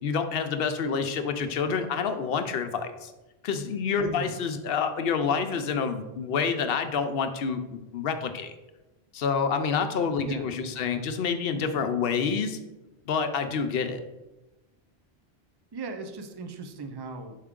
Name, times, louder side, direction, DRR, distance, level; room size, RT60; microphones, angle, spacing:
voice 1, 0.0-3.1 3.4-8.5 9.1-12.6 13.1-14.0, left 6 dB, 65° left, 8 dB, 0.8 m, -28 dB
voice 2, 4.0-4.3 10.2-11.1 15.7-17.4, right 3 dB, 40° right, 6 dB, 0.4 m, -38 dB
5.6 x 4.7 x 3.6 m, 1.0 s
omnidirectional pair, 1.1 m